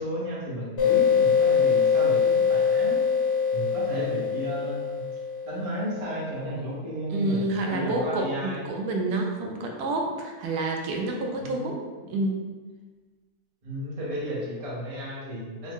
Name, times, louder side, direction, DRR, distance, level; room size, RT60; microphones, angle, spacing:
voice 1, 0.0-3.0 3.5-5.1 5.4-8.6 11.4-11.7 13.6-15.7, equal, 30° right, -6 dB, 0.6 m, -33 dB
sound 1, 0.8-6.1, left 6 dB, 55° left, 1.1 m, -23 dB
voice 2, 7.1-12.4, right 2 dB, 85° right, 1 dB, 1.1 m, -28 dB
3.5 x 2.0 x 3.6 m, 1.3 s
omnidirectional pair, 1.6 m